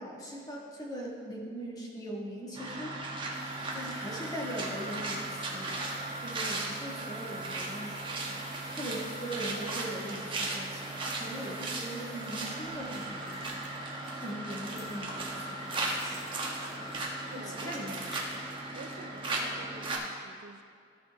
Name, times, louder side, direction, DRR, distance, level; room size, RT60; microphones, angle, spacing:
voice 1, 0.0-3.3 3.7-5.9 6.2-13.7 14.2-16.2 17.3-18.0, equal, 20° left, -3 dB, 1.6 m, -41 dB
sound 1, 2.5-20.0, right 2 dB, 30° right, 1.2 m, -36 dB
sound 2, 3.3-14.3 14.7-15.3 15.6-15.7, left 4 dB, 45° left, 1.0 m, -55 dB
sound 3, 12.3-18.6, right 1 dB, ahead, 1.7 m, -51 dB
voice 2, 17.3-18.0 18.3-20.6, right 3 dB, 55° right, 6 dB, 0.5 m, -48 dB
15.0 x 5.8 x 3.5 m, 2.3 s
head